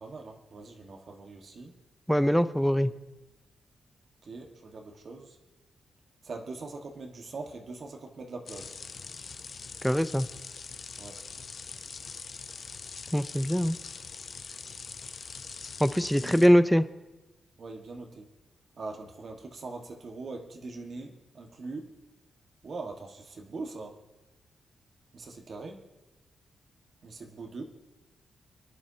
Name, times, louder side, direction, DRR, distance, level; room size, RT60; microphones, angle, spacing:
voice 1, 0.0-1.7 4.2-5.4 6.2-8.7 11.0-11.2 16.1-16.5 17.6-18.3 18.8-21.9 22.6-23.9 25.1-25.8 27.0-27.6, right 3 dB, 50° right, 2 dB, 1.6 m, -42 dB
voice 2, 2.1-2.9 9.8-10.3 13.1-13.8 15.8-16.8, equal, ahead, 12 dB, 0.6 m, -23 dB
sound 1, 8.5-16.5, left 5 dB, 45° left, 0.7 m, -43 dB
30.0 x 11.0 x 2.9 m, 1.1 s
wide cardioid pair, 125°, 0 cm